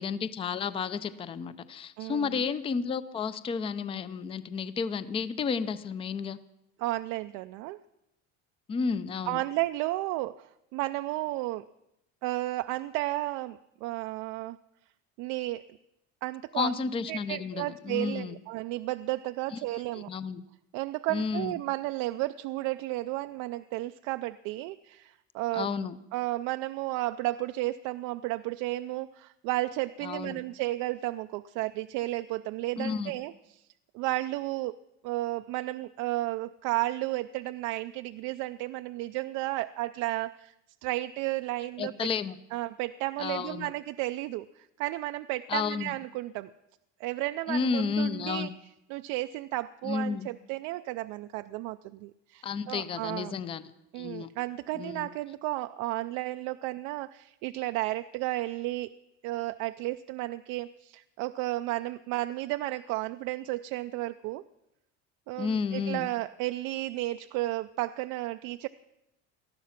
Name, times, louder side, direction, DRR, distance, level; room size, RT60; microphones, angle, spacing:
voice 1, 0.0-6.4 8.7-9.4 16.5-18.4 19.5-19.6 19.9-20.5 21.1-21.6 25.5-26.0 30.0-30.4 32.8-33.1 41.8-42.4 43.2-43.7 45.5-45.9 47.5-48.5 49.8-50.3 52.4-53.7 54.0-54.3 54.7-55.1 65.4-66.1, left 5 dB, 15° left, 14 dB, 0.5 m, -32 dB
voice 2, 2.0-2.4 6.8-7.8 9.3-11.6 12.2-14.6 15.2-15.7 16.2-16.7 17.1-20.1 20.7-25.7 26.1-33.6 33.9-34.7 35.0-40.5 40.8-41.9 42.5-46.5 47.0-48.5 48.9-53.4 53.9-58.9 59.2-64.4 65.3-68.7, right 18 dB, 70° right, 9 dB, 0.5 m, -33 dB
19.0 x 13.0 x 5.8 m, 0.86 s
cardioid pair, 160°, 31 cm